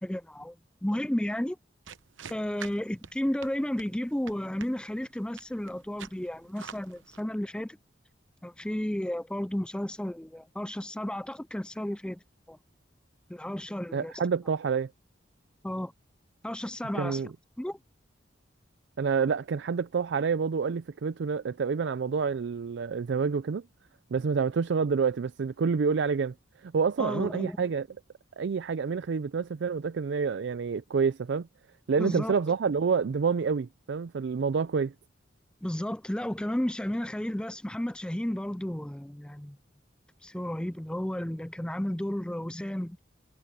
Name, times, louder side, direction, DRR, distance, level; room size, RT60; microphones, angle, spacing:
voice 1, 0.0-0.6 0.8-1.6 2.3-7.8 8.4-12.2 12.5-12.6 13.3-14.2 15.6-15.9 16.4-17.2 17.6-17.8 27.0-27.6 32.0-32.4 35.6-39.6 40.2-43.0, left 1 dB, 5° left, 0.4 m, -33 dB
sound 1, 1.9-7.2, right 7 dB, 85° right, 0.8 m, -47 dB
voice 2, 13.9-14.9 17.0-17.3 19.0-23.6 24.1-26.3 26.6-27.9 28.4-31.5 31.9-34.9, right 5 dB, 65° right, 0.4 m, -28 dB
head